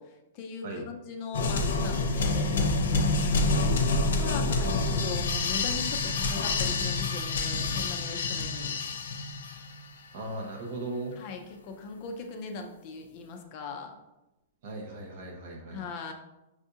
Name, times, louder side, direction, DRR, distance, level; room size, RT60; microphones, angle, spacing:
voice 1, 0.0-2.6 3.5-3.9 4.2-8.8 11.2-13.9 15.7-16.1, left 4 dB, 25° left, 4 dB, 0.4 m, -39 dB
sound 1, 1.3-9.8, left 3 dB, 85° left, 0.6 m, -27 dB
voice 2, 3.6-4.6 10.1-11.2 14.6-15.8, right 2 dB, 35° right, 0 dB, 0.6 m, -38 dB
6.2 x 2.4 x 2.7 m, 0.97 s
hypercardioid pair, 180°, 0 cm